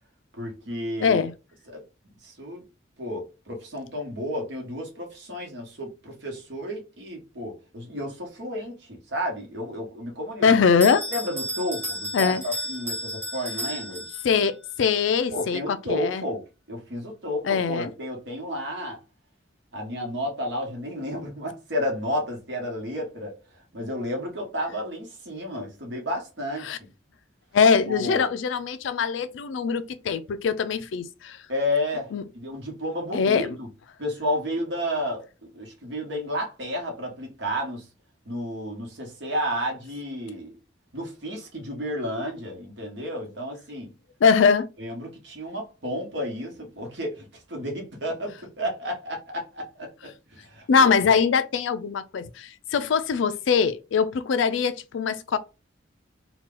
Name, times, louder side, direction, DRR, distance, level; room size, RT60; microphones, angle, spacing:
voice 1, 0.3-1.2 1.7-1.8 2.2-2.6 3.0-10.4 11.1-14.2 15.3-16.4 16.7-19.0 19.7-23.3 23.7-26.8 27.9-28.3 31.5-32.1 32.3-33.7 34.0-37.9 38.2-40.5 40.9-43.9 44.8-50.9, left 1 dB, 70° right, 1.2 m, -32 dB
voice 2, 1.0-1.3 10.4-11.0 12.1-12.4 14.2-16.2 17.4-17.9 26.6-26.8 27.5-31.4 32.1-32.3 33.1-33.6 44.2-44.7 50.7-55.4, left 6 dB, 80° left, 0.4 m, -22 dB
Bell, 10.8-14.5, right 1 dB, 10° right, 1.2 m, -33 dB
2.9 x 2.3 x 3.6 m
head